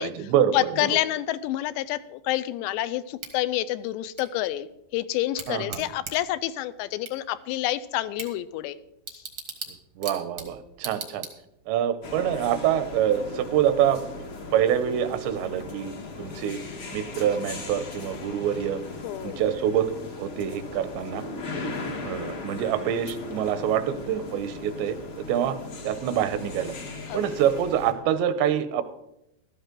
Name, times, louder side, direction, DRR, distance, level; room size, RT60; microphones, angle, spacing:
voice 1, 0.0-1.0 5.5-5.9 10.0-11.3 11.7-14.2 14.5-16.6 16.9-18.8 19.2-21.2 22.0-25.6 25.8-26.7 27.1-28.8, right 10 dB, 80° right, 12 dB, 3.0 m, -26 dB
voice 2, 0.5-4.7 4.9-8.8 9.1-9.2 19.0-19.4 27.1-27.3, left 14 dB, 85° left, 14 dB, 2.7 m, -28 dB
Bicycle / Tick, 3.2-11.8, right 5 dB, 65° right, 1.1 m, -42 dB
sound 1, 12.0-27.9, left 3 dB, 55° left, 1.4 m, -38 dB
14.5 x 13.0 x 3.8 m, 0.83 s
omnidirectional pair, 5.1 m